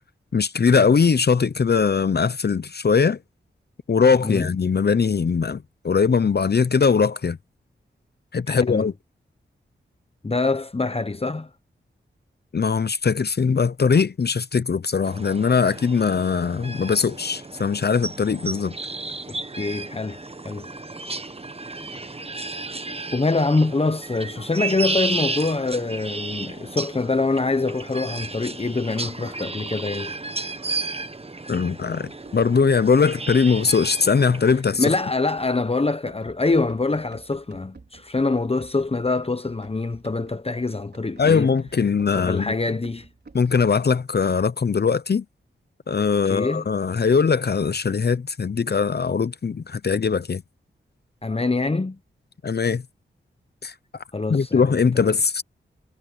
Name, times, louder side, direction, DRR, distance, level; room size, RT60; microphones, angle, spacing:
voice 1, 0.3-3.2 3.9-7.4 8.3-8.9 12.5-18.7 31.5-34.9 41.2-42.6 43.3-45.2 45.9-50.4 52.4-52.8 53.6-53.7 54.3-55.4, left 5 dB, 50° left, 0.9 m, -21 dB
voice 2, 8.5-8.9 10.2-11.5 19.3-20.7 22.2-22.3 23.1-30.1 34.8-41.5 42.1-43.1 46.2-46.6 51.2-52.0 54.1-54.8, left 3 dB, 30° left, 1.1 m, -25 dB
sound 1, 15.0-34.6, right 3 dB, 30° right, 1.5 m, -33 dB
Run, 32.0-43.7, right 3 dB, 50° right, 4.5 m, -50 dB
cardioid pair, 45°, 21 cm